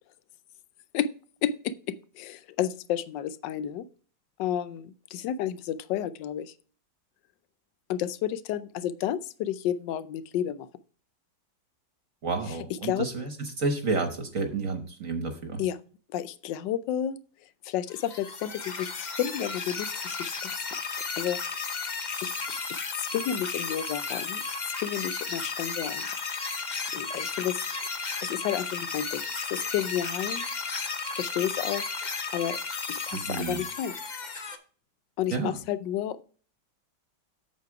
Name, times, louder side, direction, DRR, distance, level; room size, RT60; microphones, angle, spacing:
voice 1, 1.4-3.8 4.4-6.5 7.9-10.7 12.8-13.1 15.6-15.8 16.1-17.2 17.6-20.5 21.2-21.4 22.2-24.5 24.8-26.1 26.9-27.6 28.2-29.2 29.5-30.5 31.1-32.6 32.9-33.9 35.2-36.2, left 10 dB, 80° left, 14 dB, 1.3 m, -31 dB
voice 2, 12.2-15.6 33.1-33.6 35.3-35.6, right 4 dB, 50° right, 6 dB, 1.3 m, -30 dB
sound 1, 17.9-34.6, left 4 dB, 45° left, 0.6 m, -34 dB
8.4 x 6.6 x 4.7 m, 0.41 s
omnidirectional pair, 2.0 m